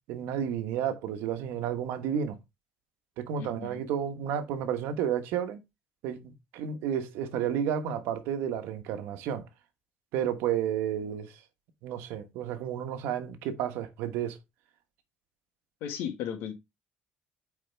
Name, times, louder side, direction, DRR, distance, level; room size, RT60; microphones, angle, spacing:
voice 1, 0.1-2.4 3.2-5.6 6.0-9.5 10.1-11.3 11.8-14.4, right 9 dB, 90° right, 1.3 m, -31 dB
voice 2, 3.4-3.8 15.8-16.5, left 9 dB, 85° left, 2.0 m, -35 dB
8.6 x 4.4 x 3.4 m
cardioid pair, 165°, 4 cm